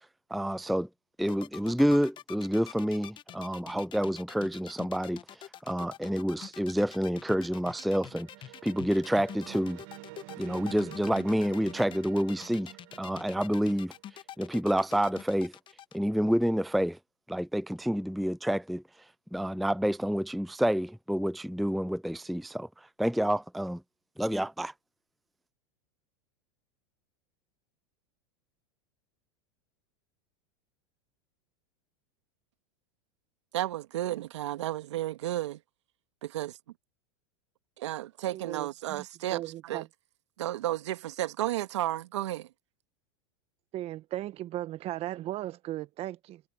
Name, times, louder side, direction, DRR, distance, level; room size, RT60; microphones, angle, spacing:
voice 1, 0.3-0.9 1.2-9.8 10.4-12.7 13.0-13.9 14.4-15.5 15.9-17.0 17.3-18.8 19.3-23.8 24.2-24.7, equal, ahead, 0.4 m, -28 dB
sound 1, 1.2-16.0, left 11 dB, 35° left, 1.1 m, -46 dB
sound 2, 7.5-14.7, right 24 dB, 60° right, 1.7 m, -49 dB
voice 2, 33.5-35.6 36.2-36.5 37.8-39.9 40.4-42.5, right 14 dB, 75° right, 1.8 m, -33 dB
voice 3, 38.3-39.0 39.3-39.9 43.7-46.4, right 14 dB, 40° right, 1.6 m, -37 dB
hypercardioid pair, 105°, 15 cm